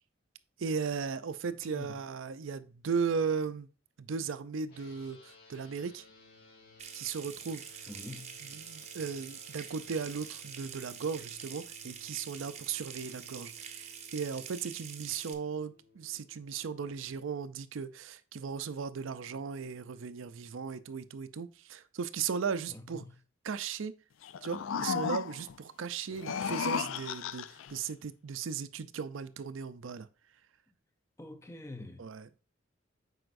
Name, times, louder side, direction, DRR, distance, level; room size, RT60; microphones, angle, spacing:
voice 1, 0.6-3.7 4.0-6.0 6.9-7.6 8.4-23.1 23.4-23.9 24.4-30.1 32.0-32.4, right 6 dB, 75° right, 0.5 m, -36 dB
voice 2, 1.6-1.9 7.9-8.4 22.7-23.1 31.2-32.1, left 2 dB, 15° left, 0.5 m, -45 dB
sound 1, 4.7-16.6, left 4 dB, 50° left, 2.2 m, -59 dB
Water tap faucet / Sink (filling or washing) / Trickle dribble, 6.8-15.3, right 8 dB, 30° right, 0.7 m, -46 dB
sound 2, 24.2-25.6 26.1-27.7, left 7 dB, 75° left, 0.4 m, -34 dB
7.8 x 5.0 x 2.6 m
head